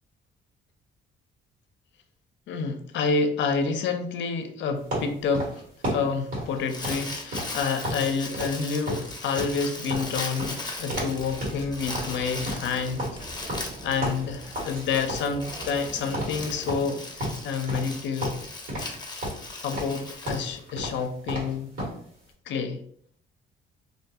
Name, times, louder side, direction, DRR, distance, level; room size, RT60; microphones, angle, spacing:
voice 1, 2.5-5.5 5.9-13.0 13.4-18.4 19.6-21.7 22.5-22.8, left 5 dB, 70° left, 7 dB, 0.4 m, -29 dB
sound 1, 4.9-8.1 8.3-8.6 8.9-11.2 11.4-11.7 11.9-14.8 15.1-15.9 16.1-16.4 16.7-17.9 18.2-19.0 19.2-22.0, equal, 85° right, 1.4 m, -33 dB
Crumpling crinkling, 6.4-21.0, left 2 dB, 20° left, 0.6 m, -38 dB
sound 2, 11.1-16.9, right 2 dB, 25° right, 0.5 m, -43 dB
2.5 x 2.2 x 2.7 m, 0.62 s
cardioid pair, 90°, 20 cm